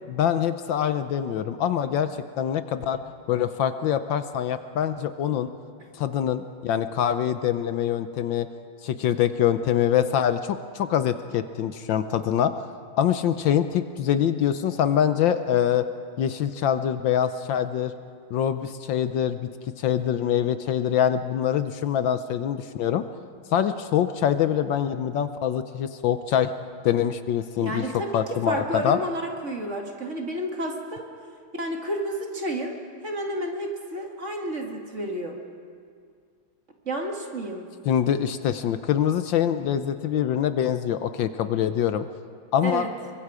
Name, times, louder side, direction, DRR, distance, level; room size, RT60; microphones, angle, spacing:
voice 1, 0.1-2.1 2.4-3.0 3.3-5.5 6.0-8.5 8.8-12.7 13.0-15.9 16.2-17.9 18.3-19.5 19.8-23.0 23.5-26.5 26.8-27.9 28.1-29.0 37.8-42.0 42.5-42.9, left 9 dB, 70° left, 10 dB, 1.4 m, -24 dB
voice 2, 27.6-31.1 31.6-35.4 36.9-37.7 42.6-42.9, right 1 dB, 35° right, 1 dB, 2.2 m, -31 dB
27.0 x 23.5 x 4.9 m, 2.2 s
omnidirectional pair, 2.2 m